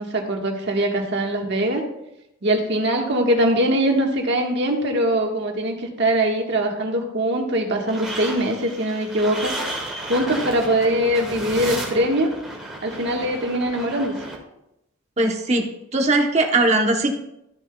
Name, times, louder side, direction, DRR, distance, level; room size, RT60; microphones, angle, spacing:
voice 1, 0.0-1.8 2.4-9.5 10.0-12.3 12.8-14.1, right 1 dB, 55° right, 1 dB, 1.4 m, -22 dB
sound 1, 7.9-14.3, right 1 dB, ahead, 1.9 m, -33 dB
voice 2, 15.2-15.7 15.9-17.1, right 2 dB, 30° right, 3 dB, 0.9 m, -19 dB
13.5 x 7.1 x 2.3 m, 0.84 s
head